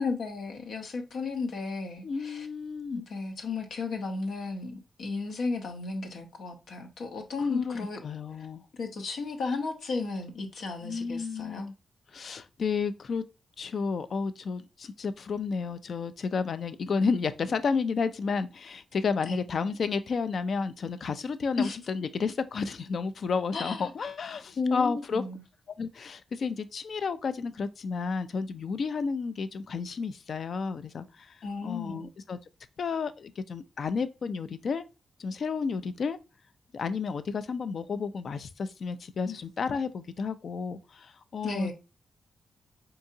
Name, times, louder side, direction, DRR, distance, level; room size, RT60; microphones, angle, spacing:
voice 1, 0.0-2.5 2.9-8.0 8.4-8.5 8.7-11.7 19.3-19.4 21.6-21.8 23.5-23.9 24.6-25.4 31.4-32.1 39.2-39.4 41.4-41.7, left 4 dB, 85° left, 0.8 m, -34 dB
voice 2, 2.0-3.0 7.5-8.6 10.8-11.7 12.1-13.2 13.6-25.2 25.8-31.3 31.6-32.4 32.8-34.8 35.2-36.2 36.7-41.7, left 5 dB, 60° left, 0.3 m, -31 dB
4.6 x 2.7 x 2.6 m
wide cardioid pair, 125°, 0 cm